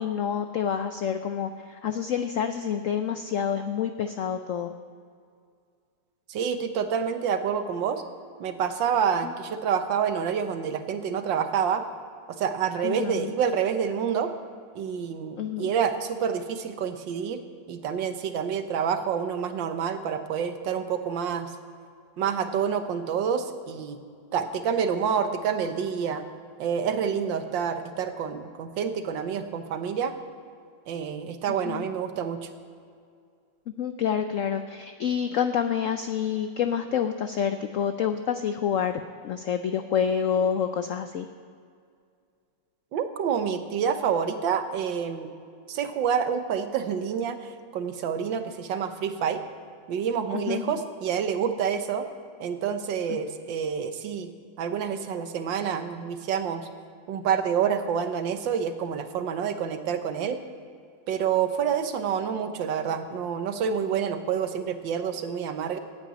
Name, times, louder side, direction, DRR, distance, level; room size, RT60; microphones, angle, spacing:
voice 1, 0.0-4.7 9.2-9.3 12.8-13.3 15.4-15.7 31.7-31.9 33.8-41.3 50.5-50.8 53.1-53.2, left 8 dB, 80° left, 8 dB, 0.7 m, -28 dB
voice 2, 6.3-8.0 8.4-11.8 12.4-14.3 14.8-17.4 17.7-21.5 22.2-24.0 24.3-26.2 26.6-30.1 30.9-32.5 42.9-45.3 45.7-49.4 49.9-52.1 52.4-54.3 54.6-56.7 57.1-60.4 61.1-65.8, right 7 dB, 75° right, 8 dB, 1.6 m, -28 dB
12.5 x 8.9 x 8.7 m, 2.3 s
omnidirectional pair, 2.1 m